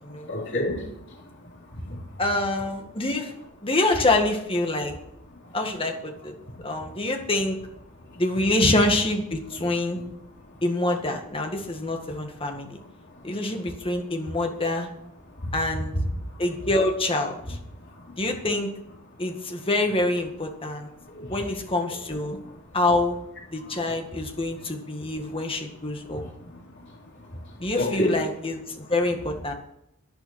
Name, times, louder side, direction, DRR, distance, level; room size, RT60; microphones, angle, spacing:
voice 1, 0.2-1.2 1.7-2.0 15.4-15.5 21.1-21.4 23.6-23.8 26.1-26.6 27.3-27.4 27.8-28.2, left 1 dB, 60° left, 3.6 m, -30 dB
voice 2, 2.2-3.3 3.6-4.9 5.5-6.4 6.6-7.6 8.2-10.0 10.6-12.8 13.2-14.9 15.5-15.9 16.4-17.6 18.2-18.7 19.2-20.9 21.3-22.4 22.7-23.1 23.5-26.2 27.6-29.5, left 2 dB, 25° left, 1.9 m, -26 dB
11.0 x 10.5 x 6.4 m
head